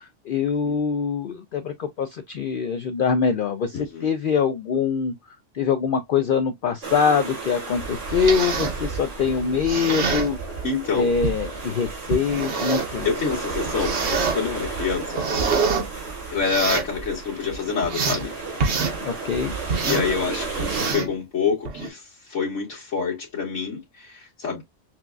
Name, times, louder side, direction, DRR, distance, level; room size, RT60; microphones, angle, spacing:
voice 1, 0.0-5.1 5.5-10.4 10.9-13.1 19.0-19.6, left 6 dB, 60° left, 0.6 m, -24 dB
voice 2, 3.7-4.1 10.6-11.1 13.0-15.2 16.3-18.3 19.8-24.6, left 5 dB, 90° left, 1.6 m, -27 dB
sound 1, 6.8-20.9, right 4 dB, 80° right, 1.9 m, -33 dB
sound 2, 7.9-8.8 9.5-10.3 11.2-11.4 12.1-12.9 13.6-14.4 14.9-15.8 16.4-16.9 17.4-18.2 18.6-19.0 19.7-20.1 20.6-21.1 21.6-21.9, right 4 dB, 65° right, 1.2 m, -25 dB
6.0 x 2.3 x 2.3 m
omnidirectional pair, 1.2 m